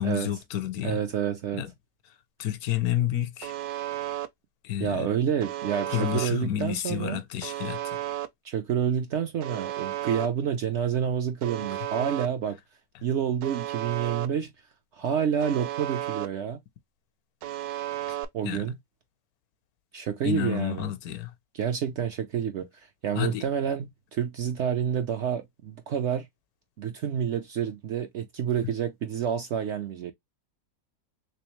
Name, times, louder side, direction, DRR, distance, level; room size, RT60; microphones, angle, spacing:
voice 1, 0.0-1.0 1.5-1.7 2.4-3.5 4.6-5.1 5.9-8.0 18.4-18.7 20.2-21.3 23.1-23.4, left 11 dB, 80° left, 1.1 m, -30 dB
voice 2, 0.8-1.6 4.8-7.2 8.4-12.6 13.0-14.5 15.0-16.6 18.3-18.7 19.9-20.9 21.5-22.7 23.0-26.3 26.8-30.1, right 8 dB, 65° right, 0.7 m, -28 dB
Alarm, 3.4-4.3 5.4-6.3 7.4-8.3 9.4-10.3 11.4-12.3 13.4-14.3 15.4-16.3 17.4-18.3, right 13 dB, 85° right, 1.1 m, -33 dB
3.4 x 3.2 x 3.0 m
omnidirectional pair, 1.6 m